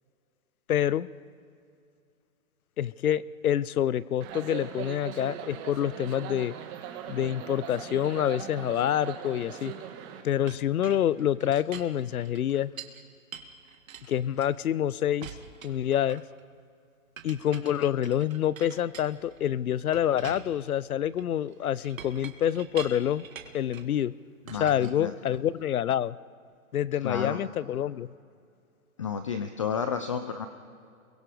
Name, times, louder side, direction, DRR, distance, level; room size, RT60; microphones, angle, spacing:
voice 1, 0.7-1.1 2.8-6.5 7.1-9.7 10.2-12.7 14.1-15.3 15.6-16.2 17.2-23.2 23.5-24.1 24.6-26.2 26.7-28.1, left 10 dB, 90° left, 20 dB, 0.8 m, -27 dB
sound 1, 4.2-10.2, right 9 dB, 20° right, 1.6 m, -40 dB
Chink clink, 10.5-13.0 13.3-14.8 15.2-16.4 17.2-19.5 19.9-24.0 24.5-25.6, right 7 dB, 70° right, 2.1 m, -46 dB
voice 2, 24.5-25.1 27.0-27.4 29.0-30.5, left 6 dB, 25° left, 8 dB, 0.5 m, -31 dB
30.0 x 22.5 x 5.0 m, 2.4 s
hypercardioid pair, 160°, 42 cm